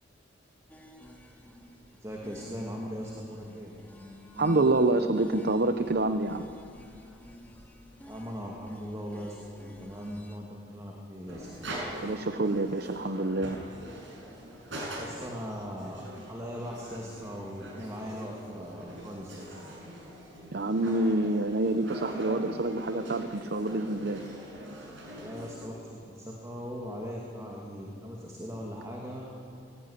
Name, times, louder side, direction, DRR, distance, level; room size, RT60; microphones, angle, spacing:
sound 1, 0.7-10.4, left 1 dB, 10° left, 2.3 m, -49 dB
voice 1, 2.0-3.7 8.1-11.5 15.0-19.6 25.1-29.3, equal, 15° right, -2 dB, 2.4 m, -39 dB
voice 2, 4.4-6.5 12.0-13.6 20.5-24.2, right 2 dB, 55° right, 9 dB, 0.7 m, -27 dB
sound 2, 11.3-25.6, right 1 dB, 75° right, 7.0 m, -43 dB
22.0 x 17.0 x 9.7 m, 2.4 s
head